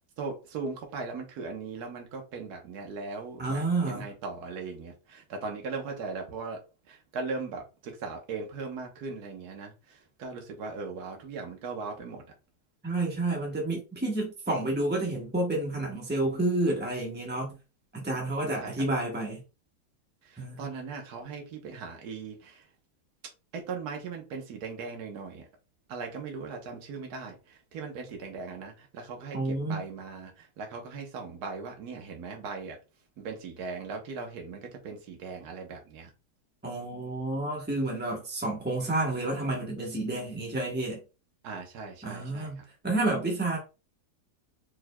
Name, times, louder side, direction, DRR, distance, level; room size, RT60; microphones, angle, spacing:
voice 1, 0.2-6.6 6.9-12.2 18.6-18.9 20.2-22.6 23.5-25.5 25.9-32.8 33.2-36.1 41.4-42.6, right 4 dB, 55° right, 1.4 m, -39 dB
voice 2, 3.4-4.1 12.8-17.6 17.9-19.4 20.4-20.6 29.3-29.8 36.6-41.0 42.0-43.6, right 2 dB, 15° right, 0.4 m, -30 dB
4.4 x 4.4 x 2.2 m
omnidirectional pair, 2.2 m